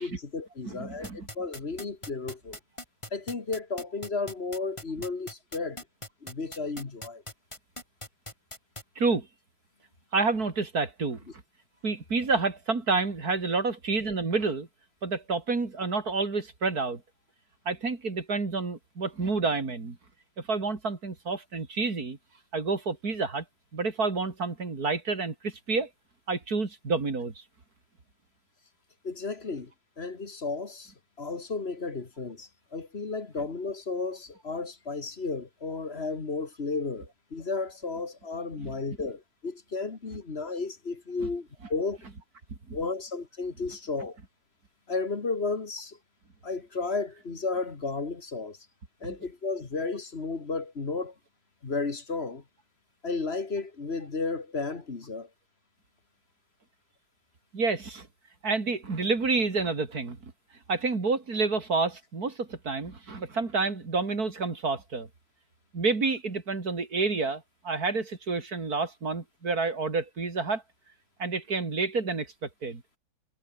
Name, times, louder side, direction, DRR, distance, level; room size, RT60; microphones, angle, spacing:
voice 1, 0.0-2.6 3.1-5.8 6.2-7.2 29.0-29.7 30.0-30.9 31.2-42.0 42.7-44.2 44.9-46.0 46.4-48.6 49.0-51.1 51.6-52.4 53.0-55.3, left 4 dB, 45° left, 2.2 m, -33 dB
voice 2, 0.7-1.3 9.0-9.3 10.1-11.2 11.8-14.7 15.0-17.0 17.7-20.0 20.5-22.2 22.5-23.4 23.7-25.9 26.3-27.4 38.6-38.8 41.2-41.3 49.0-49.1 57.5-58.1 58.4-60.2 60.7-65.1 65.7-70.6 71.2-72.8, right 4 dB, 85° right, 3.8 m, -29 dB
sound 1, 1.0-8.8, left 1 dB, 20° left, 6.1 m, -40 dB
omnidirectional pair, 1.6 m